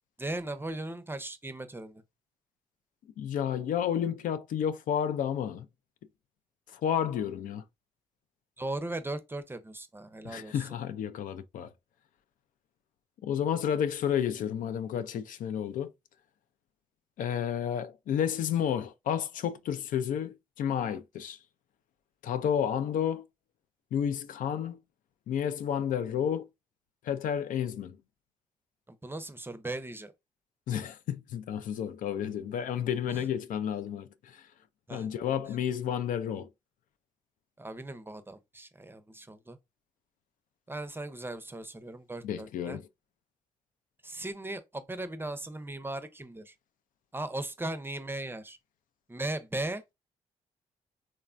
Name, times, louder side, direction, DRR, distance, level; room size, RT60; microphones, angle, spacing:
voice 1, 0.2-2.0 8.6-10.6 28.9-30.1 33.1-33.2 34.9-35.1 37.6-39.6 40.7-42.8 44.0-46.5 47.1-48.6 49.1-49.9, right 2 dB, 15° right, 0.5 m, -38 dB
voice 2, 3.2-5.7 6.7-7.6 10.2-11.7 13.2-15.9 17.2-21.4 22.2-23.2 23.9-24.8 25.3-26.4 27.0-28.0 30.7-34.5 34.9-36.5 42.2-42.9, left 9 dB, 70° left, 0.4 m, -31 dB
3.2 x 2.1 x 2.4 m
supercardioid pair, 55°, 14 cm